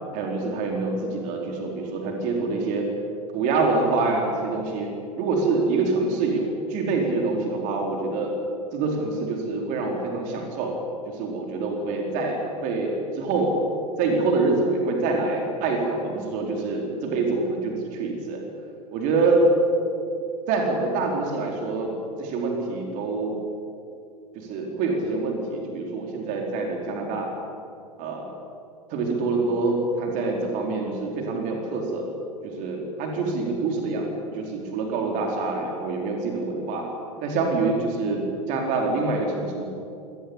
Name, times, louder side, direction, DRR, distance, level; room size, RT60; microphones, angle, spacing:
voice 1, 0.1-2.9 3.3-8.3 8.7-10.8 11.1-13.6 14.0-18.4 18.9-19.5 20.5-23.4 24.3-27.3 28.0-28.3 28.9-32.1 32.4-36.9 37.2-39.6, right 3 dB, 40° right, 1 dB, 4.7 m, -26 dB
26.5 x 18.0 x 8.9 m, 2.6 s
figure-of-eight pair, 90°, 19 cm